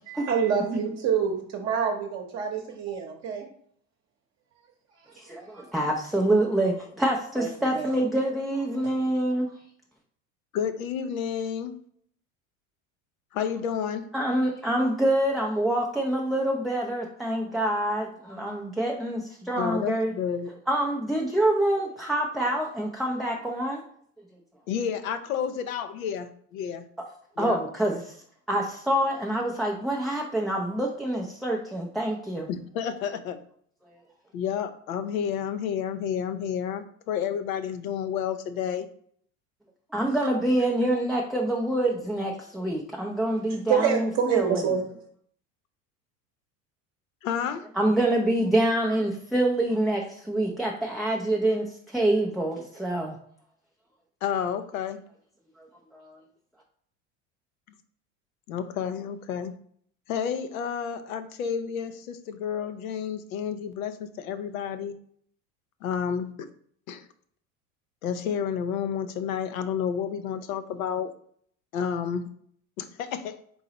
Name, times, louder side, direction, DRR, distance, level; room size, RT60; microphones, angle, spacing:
voice 1, 0.1-3.4 7.4-7.9 8.8-8.9 43.7-45.0, right 7 dB, 40° right, 1 dB, 0.9 m, -27 dB
voice 2, 5.2-9.5 14.1-20.1 20.7-23.8 27.4-28.2 28.5-32.5 33.9-34.0 39.9-44.7 47.8-53.2 55.6-55.7 55.9-56.2, right 1 dB, ahead, -1 dB, 0.4 m, -26 dB
voice 3, 10.5-11.8 13.3-14.1 19.6-20.5 24.7-26.8 27.4-27.6 32.5-33.4 34.3-38.9 47.2-47.7 54.2-55.0 58.5-59.6 60.1-64.9 65.8-66.5 66.9-67.1 68.0-71.1 71.7-72.3 72.8-73.4, left 8 dB, 85° left, 9 dB, 0.6 m, -30 dB
3.9 x 3.8 x 2.9 m, 0.62 s
hypercardioid pair, 90°, 40 cm